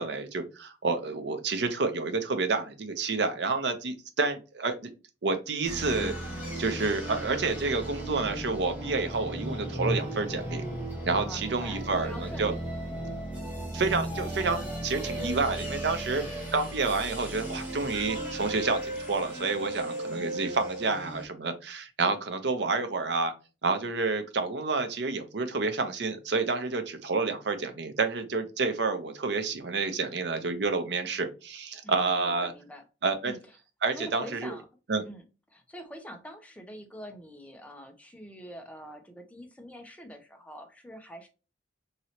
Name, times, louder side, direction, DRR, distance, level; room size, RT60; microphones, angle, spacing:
voice 1, 0.0-4.9 5.2-6.2 6.6-10.6 11.0-12.5 13.7-16.2 16.5-23.3 23.6-32.5 33.0-33.3 33.8-34.5 34.9-35.0, right 3 dB, 70° right, 0.6 m, -29 dB
sound 1, 5.6-21.3, right 1 dB, 10° right, 1.2 m, -36 dB
voice 2, 11.2-12.6 31.8-32.8 33.2-33.4 34.0-34.6 35.0-41.3, equal, 10° left, 0.6 m, -45 dB
3.0 x 2.8 x 2.8 m
head